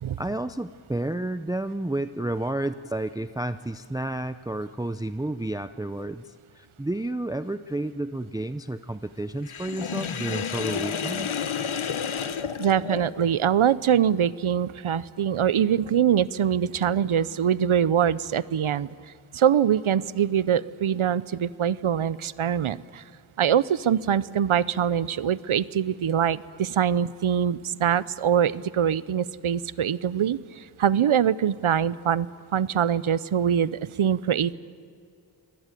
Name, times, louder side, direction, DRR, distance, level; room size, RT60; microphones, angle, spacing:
voice 1, 0.2-6.2 6.5-11.5, right 1 dB, 10° right, 11 dB, 0.6 m, -31 dB
Sink (filling or washing), 9.4-13.4, left 7 dB, 75° left, 1.1 m, -31 dB
voice 2, 12.6-18.9 19.3-23.0 23.4-32.3 32.5-34.5, right 9 dB, 80° right, 18 dB, 0.8 m, -23 dB
24.5 x 19.0 x 9.1 m, 2.4 s
wide cardioid pair, 65°, 49 cm